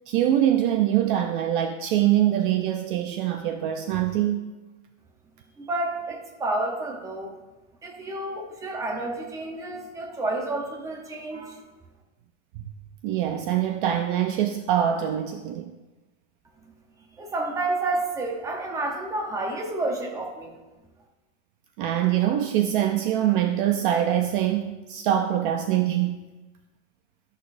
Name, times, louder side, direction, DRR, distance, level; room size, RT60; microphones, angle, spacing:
voice 1, 0.1-4.5 13.0-15.7 21.8-26.3, right 11 dB, 45° right, 6 dB, 0.4 m, -24 dB
voice 2, 5.6-7.3 7.8-11.6 17.2-20.6, right 2 dB, 10° right, 1 dB, 0.8 m, -30 dB
13.0 x 6.3 x 2.5 m, 1.2 s
supercardioid pair, 170°, 37 cm